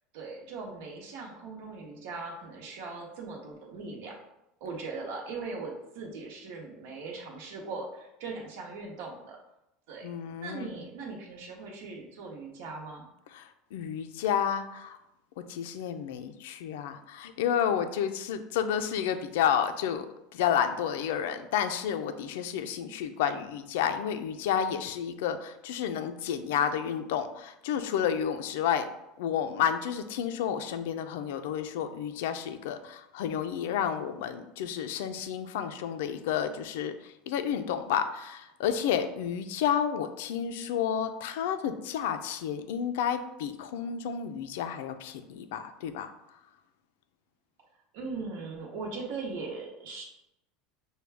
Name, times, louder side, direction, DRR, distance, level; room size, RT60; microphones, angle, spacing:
voice 1, 0.1-4.1 4.6-9.4 9.9-10.1 10.4-13.1 47.9-50.0, right 4 dB, 70° right, -1 dB, 1.0 m, -39 dB
voice 2, 10.0-10.8 13.3-15.0 15.5-20.1 20.3-28.9 29.2-46.1, left 8 dB, 80° left, 9 dB, 0.4 m, -31 dB
6.2 x 2.3 x 3.4 m, 0.86 s
supercardioid pair, 150°, 0 cm